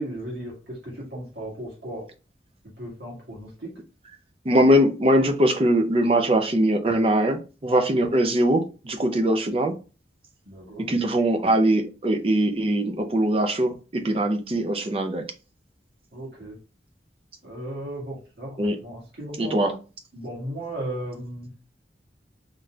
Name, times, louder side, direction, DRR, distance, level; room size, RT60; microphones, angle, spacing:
voice 1, 0.0-2.1 2.8-3.7 10.4-10.9 16.1-16.6 17.4-19.7 20.1-21.5, right 1 dB, 70° right, -5 dB, 1.9 m, -36 dB
voice 2, 4.4-9.8 10.8-15.2 18.6-18.8 19.4-19.7, right 1 dB, 30° right, 6 dB, 0.5 m, -21 dB
4.0 x 3.2 x 2.3 m, 0.34 s
head